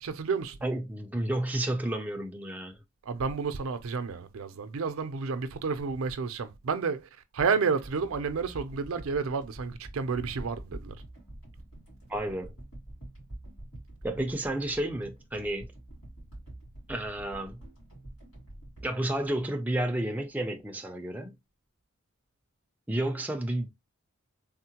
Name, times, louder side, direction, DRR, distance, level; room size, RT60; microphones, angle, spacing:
voice 1, 0.0-0.6 3.0-11.0, right 5 dB, 75° right, 0.5 m, -31 dB
voice 2, 0.6-2.8 12.1-12.5 14.0-15.7 16.9-17.6 18.8-21.3 22.9-23.7, right 1 dB, 10° right, 0.4 m, -31 dB
sound 1, 7.8-20.0 20.6-20.7, right 1 dB, 80° left, 2.4 m, -47 dB
3.6 x 2.1 x 2.8 m
head